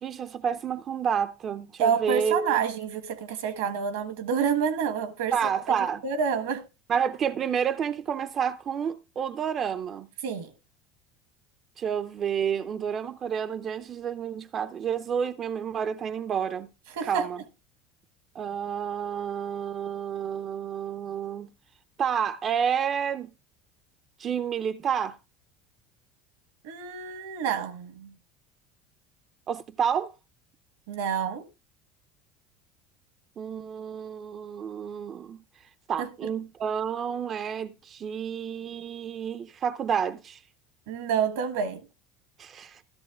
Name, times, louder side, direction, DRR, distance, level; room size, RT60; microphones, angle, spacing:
voice 1, 0.0-2.6 5.3-6.0 6.9-10.1 11.8-16.7 17.0-17.4 18.3-21.5 22.0-23.3 24.2-25.2 29.5-30.1 33.4-35.4 35.9-40.4 42.4-42.8, right 7 dB, 45° right, 0.5 m, -29 dB
voice 2, 1.8-6.7 10.2-10.5 16.9-17.3 26.6-28.1 30.9-31.4 36.0-36.3 40.9-41.9, right 7 dB, 80° right, 1.3 m, -28 dB
14.0 x 12.5 x 2.4 m
hypercardioid pair, 80°, 0 cm